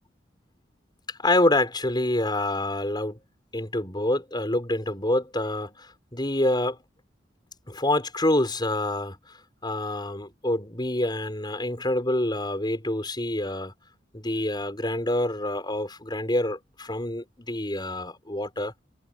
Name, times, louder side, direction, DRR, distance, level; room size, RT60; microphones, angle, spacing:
voice 1, 1.1-3.2 3.5-6.8 7.7-13.7 14.1-18.7, left 1 dB, 25° left, 5.2 m, -27 dB
head